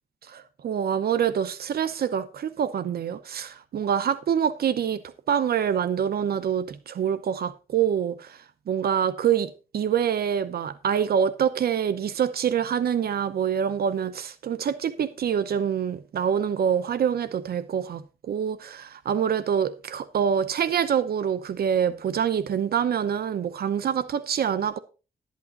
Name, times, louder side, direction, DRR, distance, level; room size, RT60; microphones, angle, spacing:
voice 1, 0.3-5.0 5.3-24.8, right 8 dB, 80° right, 0.8 m, -26 dB
12.0 x 8.5 x 3.9 m
cardioid pair, 90°, 16 cm